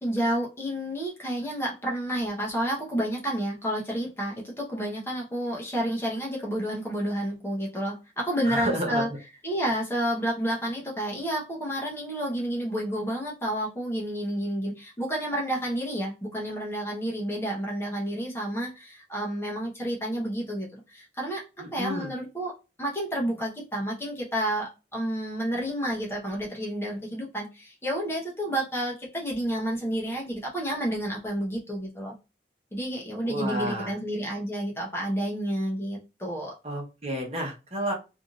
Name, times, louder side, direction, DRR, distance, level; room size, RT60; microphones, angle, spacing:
voice 1, 0.0-9.1 9.4-21.4 21.7-32.1 32.7-36.5, equal, 15° left, 0.9 m, -30 dB
voice 2, 8.5-9.0 21.6-22.1 33.2-33.9 36.6-37.9, right 1 dB, 35° right, 1.0 m, -31 dB
3.5 x 2.7 x 2.4 m
head